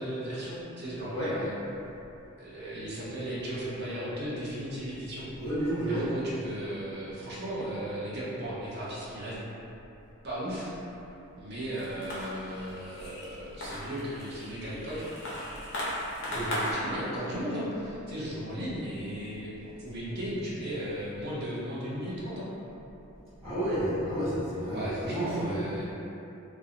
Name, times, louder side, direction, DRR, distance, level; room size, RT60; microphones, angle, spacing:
voice 1, 0.0-1.6 2.4-5.3 5.9-9.4 10.2-10.7 11.4-15.1 16.2-19.5 19.8-22.5 24.7-25.8, equal, 50° right, -8 dB, 0.6 m, -36 dB
voice 2, 5.4-6.1 16.3-16.5 23.4-25.6, right 1 dB, 30° right, -14 dB, 1.1 m, -31 dB
sound 1, 11.7-16.7, left 1 dB, 55° left, 0.6 m, -37 dB
2.4 x 2.2 x 2.8 m, 2.9 s
head